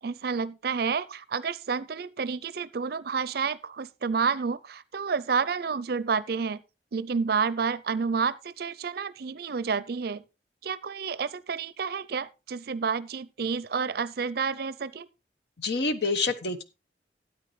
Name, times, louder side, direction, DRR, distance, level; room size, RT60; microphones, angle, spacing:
voice 1, 0.0-6.6 6.9-10.2 10.6-15.1, right 5 dB, 60° right, 0.5 m, -30 dB
voice 2, 15.6-16.6, left 3 dB, 65° left, 1.1 m, -27 dB
13.5 x 9.0 x 3.1 m
head